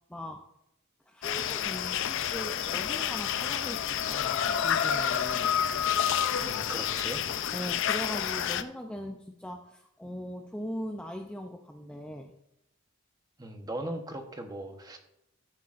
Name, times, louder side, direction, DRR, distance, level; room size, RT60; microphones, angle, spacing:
voice 1, 0.1-0.4 1.1-5.5 7.5-12.3, equal, 5° left, 2 dB, 0.5 m, -40 dB
sound 1, 1.2-8.6, left 9 dB, 60° left, 0.5 m, -29 dB
voice 2, 6.4-7.2 13.4-15.0, right 1 dB, 15° right, 4 dB, 1.0 m, -38 dB
14.0 x 7.8 x 2.5 m, 0.83 s
head